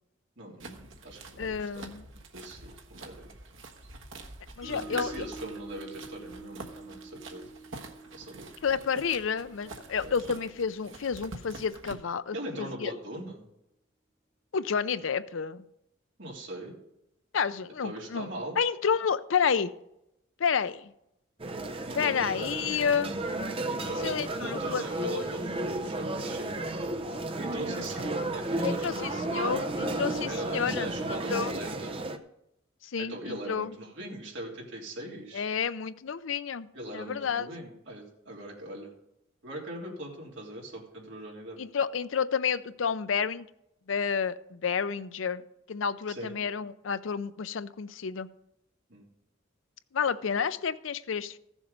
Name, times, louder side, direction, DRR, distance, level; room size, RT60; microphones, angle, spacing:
voice 1, 0.4-1.9 2.3-3.3 4.6-7.5 8.1-8.8 10.0-10.2 12.3-13.5 16.2-16.8 17.8-18.6 21.9-22.3 23.7-24.1 24.4-26.8 27.4-29.1 30.2-32.0 33.0-35.5 36.7-38.9 39.4-41.6 46.1-46.3 48.9-49.1, right 1 dB, 65° right, -2 dB, 3.2 m, -40 dB
sound 1, 0.6-11.9, right 3 dB, 80° right, 1.3 m, -46 dB
voice 2, 1.4-2.0 4.6-5.2 8.6-12.9 14.5-15.6 17.3-18.3 18.6-19.7 20.4-20.9 22.0-23.1 24.0-25.3 28.6-31.6 32.8-33.7 35.3-36.7 36.9-37.5 41.6-43.5 43.9-45.4 45.7-48.3 49.9-51.4, left 6 dB, 75° left, 15 dB, 0.5 m, -30 dB
Mallet percussion, 4.6-10.8, right 3 dB, 5° right, 2.9 m, -47 dB
sound 2, 21.4-32.2, right 2 dB, 30° right, 0.7 m, -33 dB
15.0 x 7.2 x 5.2 m, 0.83 s
head